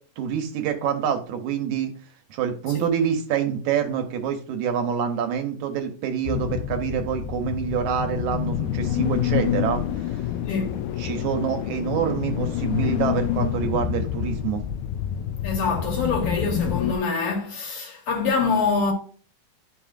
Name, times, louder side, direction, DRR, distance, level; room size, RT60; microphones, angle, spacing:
voice 1, 0.2-1.9 2.3-10.2 11.0-14.6, right 8 dB, 75° right, 2.1 m, -26 dB
sound 1, 6.2-17.0, left 11 dB, 80° left, 1.7 m, -27 dB
voice 2, 10.5-10.8 15.4-18.9, left 4 dB, 65° left, 3.0 m, -25 dB
11.0 x 5.6 x 2.4 m
omnidirectional pair, 3.7 m